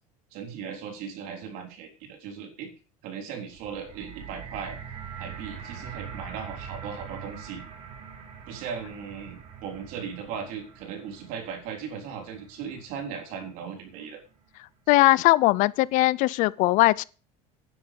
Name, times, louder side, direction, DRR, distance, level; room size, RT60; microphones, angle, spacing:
voice 1, 0.3-2.7 3.0-4.8 5.2-7.7 8.5-14.2, right 7 dB, 65° right, 3.8 m, -37 dB
sound 1, 3.5-13.7 14.5-14.6, right 7 dB, 45° right, 3.3 m, -43 dB
voice 2, 14.9-17.0, left 19 dB, 55° left, 0.5 m, -20 dB
10.5 x 10.0 x 5.2 m
cardioid pair, 165°, 16 cm